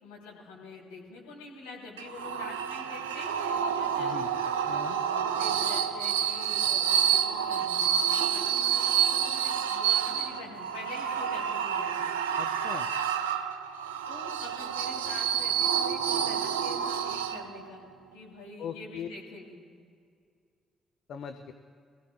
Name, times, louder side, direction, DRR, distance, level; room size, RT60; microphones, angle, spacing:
voice 1, 0.0-4.2 4.8-12.1 14.1-17.8 18.1-19.6, left 3 dB, 70° left, -3 dB, 2.9 m, -46 dB
sound 1, 2.0-17.7, right 8 dB, 75° right, 0.5 m, -29 dB
voice 2, 4.0-4.3 4.7-4.9 12.4-12.9 18.6-19.1 21.1-21.5, left 8 dB, 55° left, 8 dB, 0.6 m, -40 dB
24.5 x 16.0 x 2.3 m, 2.2 s
figure-of-eight pair, 40°, 0 cm